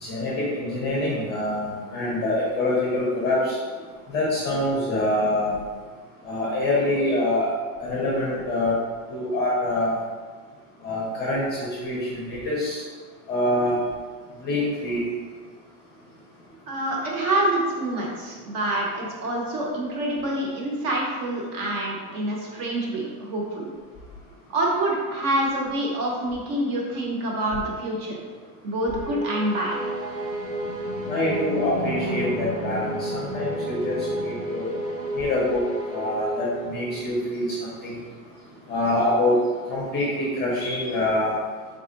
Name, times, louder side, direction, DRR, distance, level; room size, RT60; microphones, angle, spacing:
voice 1, 0.0-3.6 4.1-5.6 6.2-7.5 7.8-8.7 9.1-10.0 10.8-11.5 11.8-12.8 13.3-13.7 14.4-15.0 31.1-34.7 35.1-35.6 35.9-37.6 37.8-38.0 38.7-39.4 39.7-40.1 40.4-41.4, left 1 dB, 20° left, -5 dB, 0.6 m, -25 dB
voice 2, 16.7-23.7 24.5-28.2 28.6-29.8, right 1 dB, 45° right, -2 dB, 0.9 m, -26 dB
sound 1, 28.7-37.2, right 1 dB, 10° right, 1.0 m, -31 dB
3.6 x 2.1 x 3.7 m, 1.5 s
supercardioid pair, 145°, 49 cm